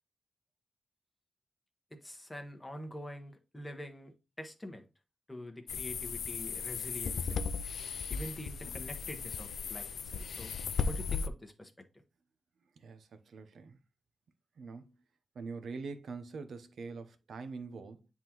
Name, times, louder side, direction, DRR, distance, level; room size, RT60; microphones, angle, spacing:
voice 1, 1.9-4.8 5.3-7.5 8.1-10.5 10.9-11.7, left 1 dB, 10° left, 1.1 m, -45 dB
sound 1, 5.7-11.3, left 5 dB, 80° left, 0.4 m, -36 dB
voice 2, 12.8-13.8 14.6-15.0 15.3-18.1, right 4 dB, 75° right, 0.8 m, -44 dB
9.5 x 3.7 x 3.0 m
wide cardioid pair, 150°, 0 cm